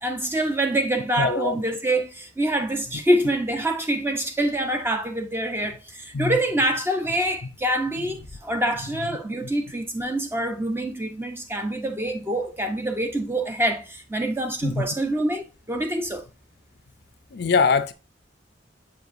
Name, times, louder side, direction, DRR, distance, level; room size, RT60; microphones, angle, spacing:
voice 1, 0.0-16.2, right 1 dB, 15° right, 0.8 m, -26 dB
voice 2, 1.2-1.6 6.1-6.4 14.6-14.9 17.3-17.9, left 5 dB, 60° left, 0.5 m, -22 dB
7.5 x 4.7 x 2.6 m
head